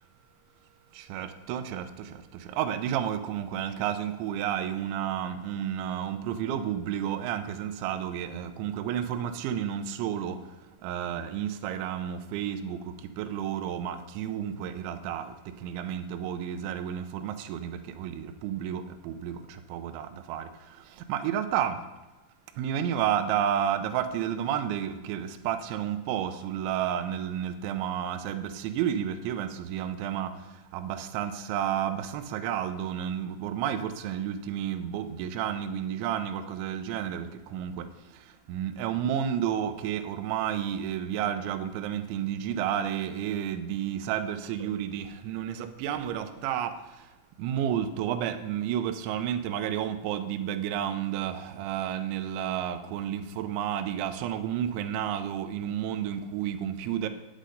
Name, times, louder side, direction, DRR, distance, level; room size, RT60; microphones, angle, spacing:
voice 1, 0.9-21.8 22.5-47.1 47.4-57.1, right 9 dB, 80° right, 8 dB, 3.0 m, -31 dB
9.7 x 8.4 x 3.9 m, 1.1 s
omnidirectional pair, 5.5 m